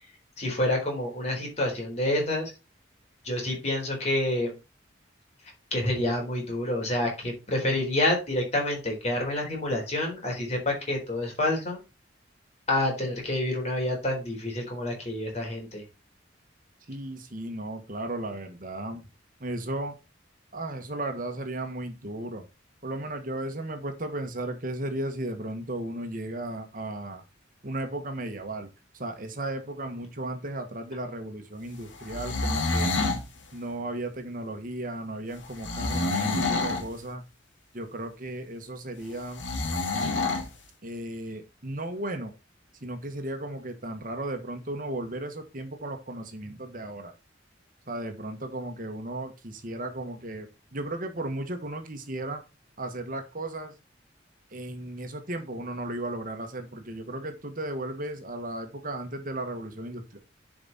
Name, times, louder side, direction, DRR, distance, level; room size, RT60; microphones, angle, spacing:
voice 1, 0.4-2.5 3.2-4.5 5.7-11.8 12.7-15.8, left 1 dB, 35° left, 0 dB, 4.1 m, -28 dB
voice 2, 16.9-19.0 19.4-19.9 20.5-22.4 22.8-27.2 27.6-28.7 28.9-33.0 33.5-37.2 37.7-39.4 40.8-42.3 42.8-47.1 47.9-52.4 52.8-53.7 54.5-60.2, right 1 dB, 45° right, 6 dB, 1.4 m, -35 dB
sound 1, 32.0-33.2 35.6-36.9 39.4-40.5, left 3 dB, 90° left, 2.2 m, -27 dB
10.5 x 5.1 x 4.1 m, 0.28 s
head